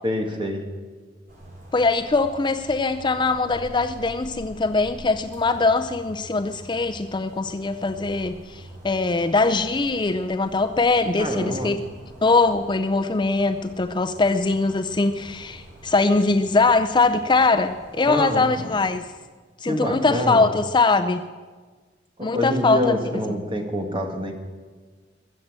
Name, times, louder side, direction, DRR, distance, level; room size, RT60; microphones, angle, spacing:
voice 1, 0.0-0.6 11.2-11.7 18.1-18.6 19.7-20.5 22.2-24.3, equal, 30° right, 3 dB, 2.0 m, -26 dB
sound 1, 1.3-18.9, right 1 dB, 50° right, 4.4 m, -45 dB
voice 2, 1.7-11.8 12.2-19.1 19.6-21.2 22.2-23.2, left 3 dB, 25° left, 8 dB, 0.5 m, -22 dB
22.0 x 7.6 x 7.5 m, 1.4 s
head